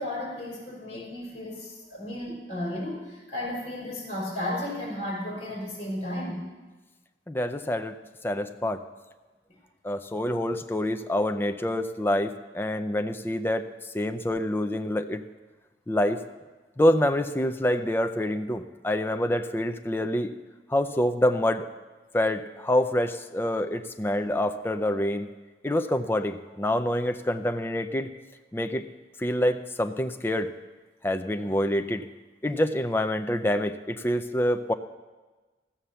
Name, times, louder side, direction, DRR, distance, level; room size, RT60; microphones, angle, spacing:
voice 1, 0.0-6.5, left 1 dB, 40° left, -4 dB, 5.1 m, -34 dB
voice 2, 7.3-7.9 8.2-8.8 9.8-13.6 13.9-15.2 15.9-16.2 16.8-20.3 20.7-21.7 22.1-25.3 25.6-28.1 28.5-28.9 29.2-30.5 31.0-32.0 32.4-34.7, left 1 dB, 15° left, 7 dB, 0.4 m, -26 dB
14.5 x 7.2 x 6.8 m, 1.3 s
head